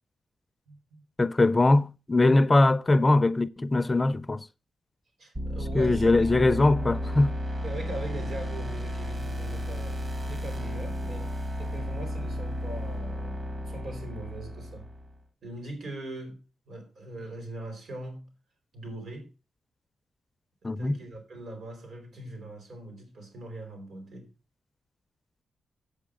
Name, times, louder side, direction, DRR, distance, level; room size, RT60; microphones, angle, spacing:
voice 1, 0.7-1.0 5.2-6.2 7.6-14.9 15.4-18.3 18.7-19.3 20.6-24.3, right 1 dB, 75° right, 4.2 m, -41 dB
voice 2, 1.2-4.5 5.7-7.4 20.6-20.9, left 2 dB, 20° left, 0.4 m, -22 dB
sound 1, 5.3-15.2, equal, 30° right, 1.1 m, -33 dB
8.4 x 8.3 x 4.9 m
wide cardioid pair, 165°, 0 cm